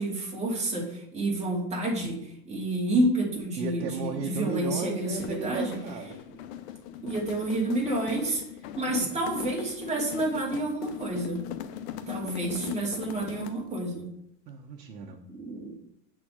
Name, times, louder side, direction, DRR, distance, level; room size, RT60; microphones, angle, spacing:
voice 1, 0.0-5.8 7.0-8.4 8.8-11.4 12.1-14.0 15.3-15.7, right 1 dB, 15° right, -3 dB, 2.5 m, -29 dB
voice 2, 3.6-6.2 14.5-15.2, right 7 dB, 80° right, 0 dB, 1.2 m, -35 dB
sound 1, 5.1-13.7, left 11 dB, 40° left, 0.7 m, -40 dB
7.2 x 4.4 x 6.5 m, 0.75 s
hypercardioid pair, 130°, 49 cm